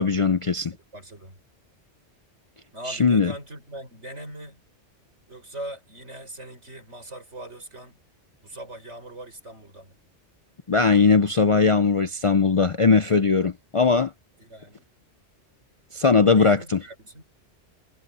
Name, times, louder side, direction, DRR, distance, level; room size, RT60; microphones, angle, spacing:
voice 1, 0.0-0.7 2.9-3.3 10.7-14.1 15.9-16.8, left 4 dB, 45° left, 0.4 m, -19 dB
voice 2, 0.7-1.4 2.7-4.6 5.3-8.0 8.4-10.0 14.4-14.9 16.3-17.2, right 1 dB, 80° right, 7.2 m, -41 dB
omnidirectional pair, 1.2 m